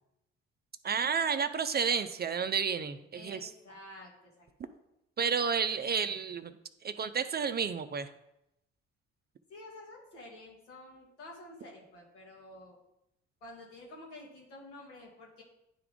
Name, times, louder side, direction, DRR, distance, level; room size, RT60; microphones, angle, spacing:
voice 1, 0.8-3.5 5.2-6.5 6.8-8.1, right 6 dB, 30° right, 11 dB, 0.5 m, -31 dB
voice 2, 3.1-4.7 9.5-12.8 13.4-15.4, left 1 dB, 85° left, -3 dB, 1.4 m, -50 dB
9.9 x 3.4 x 3.6 m, 0.86 s
hypercardioid pair, 45°, 35 cm